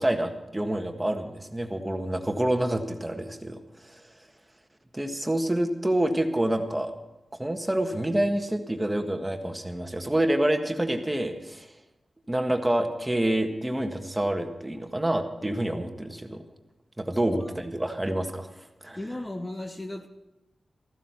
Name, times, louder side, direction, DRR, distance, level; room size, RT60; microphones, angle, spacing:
voice 1, 0.0-4.0 4.9-6.9 7.4-11.7 12.3-16.4 17.0-18.5 18.8-19.0, right 1 dB, 15° right, 1.5 m, -27 dB
voice 2, 17.1-17.6 19.0-20.1, left 1 dB, 20° left, 1.1 m, -37 dB
15.0 x 12.5 x 5.7 m
wide cardioid pair, 80°, 0 cm